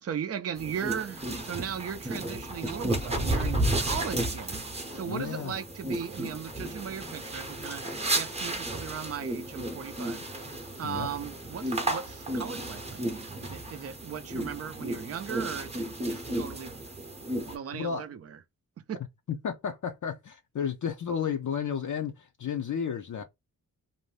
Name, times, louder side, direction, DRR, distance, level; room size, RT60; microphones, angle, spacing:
voice 1, 0.0-10.2 10.8-16.7 17.5-18.4 18.9-19.0, right 8 dB, 45° right, 0.5 m, -37 dB
sound 1, 0.6-17.6, right 1 dB, 15° right, 0.7 m, -33 dB
voice 2, 5.1-5.6 10.8-11.1 17.7-18.1 19.3-23.2, left 7 dB, 55° left, 0.5 m, -32 dB
2.6 x 2.1 x 3.1 m
wide cardioid pair, 105°, 36 cm